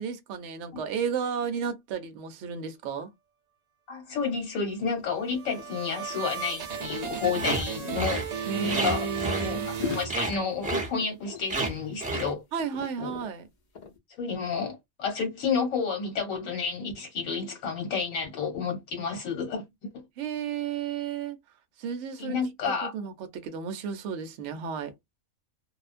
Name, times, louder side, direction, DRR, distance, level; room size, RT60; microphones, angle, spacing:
voice 1, 0.0-3.1 8.5-9.7 12.5-13.5 20.2-21.4 21.8-22.4 22.6-24.9, right 6 dB, 65° right, 0.8 m, -33 dB
voice 2, 3.9-9.1 9.4-12.4 13.0-13.1 14.1-19.6 19.9-20.0 22.2-22.9, left 5 dB, 70° left, 1.2 m, -31 dB
sound 1, 4.2-4.3 4.6-7.4 8.2-9.5 9.8-12.3 12.6-13.3 13.8-14.0, left 6 dB, 45° left, 0.6 m, -41 dB
sound 2, 5.1-10.7, right 7 dB, 90° right, 0.3 m, -35 dB
sound 3, 7.4-7.6 7.9-8.3 8.7-9.8 10.1-10.4 10.6-10.9 11.5-11.7 12.0-12.3, right 2 dB, 10° right, 0.4 m, -29 dB
2.4 x 2.1 x 2.4 m
omnidirectional pair, 1.5 m